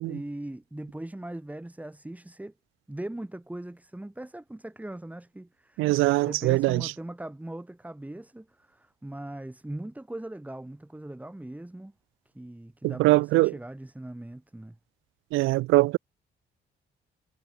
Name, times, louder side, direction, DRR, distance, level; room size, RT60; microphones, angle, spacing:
voice 1, 0.0-2.5 2.9-11.9 12.3-14.8, right 1 dB, 5° right, 1.6 m, -40 dB
voice 2, 5.8-6.9 12.8-13.5 15.3-16.0, right 20 dB, 90° right, 0.4 m, -22 dB
cardioid pair, 90°, 20 cm